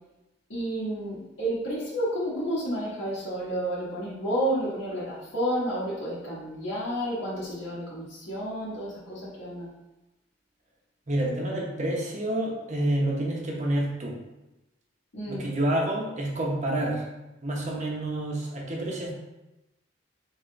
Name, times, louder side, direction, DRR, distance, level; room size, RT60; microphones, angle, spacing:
voice 1, 0.5-9.7 15.1-15.5, right 1 dB, 85° left, -9 dB, 1.3 m, -31 dB
voice 2, 11.1-14.2 15.3-17.0 17.4-19.1, right 1 dB, 40° right, -2 dB, 1.0 m, -28 dB
3.9 x 3.7 x 3.3 m, 0.97 s
head